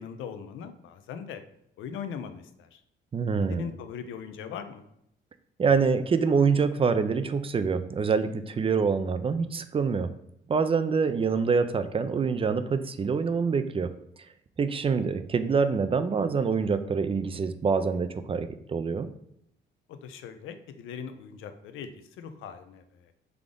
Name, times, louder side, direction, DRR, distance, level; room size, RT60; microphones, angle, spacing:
voice 1, 0.0-1.4 1.8-2.8 3.4-4.8 19.9-23.1, left 7 dB, 85° left, 9 dB, 0.5 m, -40 dB
voice 2, 3.1-3.7 5.6-10.1 10.5-13.9 14.6-19.1, right 5 dB, 30° right, 10 dB, 0.4 m, -25 dB
3.6 x 3.5 x 3.7 m, 0.74 s
cardioid pair, 90°, 20 cm